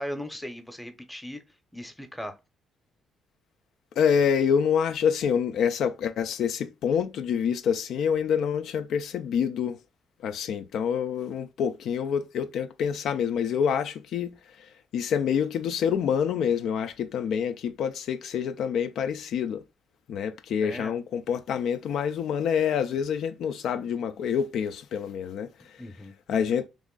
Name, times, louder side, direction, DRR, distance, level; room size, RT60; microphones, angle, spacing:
voice 1, 0.0-1.4 1.7-2.4 20.6-20.9 25.6-26.1, equal, 5° left, 0.7 m, -38 dB
voice 2, 4.0-9.8 10.2-14.3 14.9-19.6 20.1-25.5 26.3-26.7, left 7 dB, 75° left, 0.3 m, -27 dB
3.0 x 2.5 x 3.7 m
cardioid pair, 90°, 0 cm